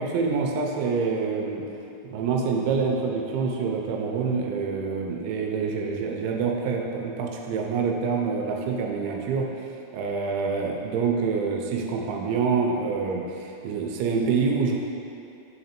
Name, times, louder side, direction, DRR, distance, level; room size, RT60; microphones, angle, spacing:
voice 1, 0.0-1.7 2.0-9.5 9.9-14.9, right 5 dB, 80° right, 1 dB, 2.8 m, -26 dB
6.7 x 3.9 x 4.3 m, 2.7 s
omnidirectional pair, 5.5 m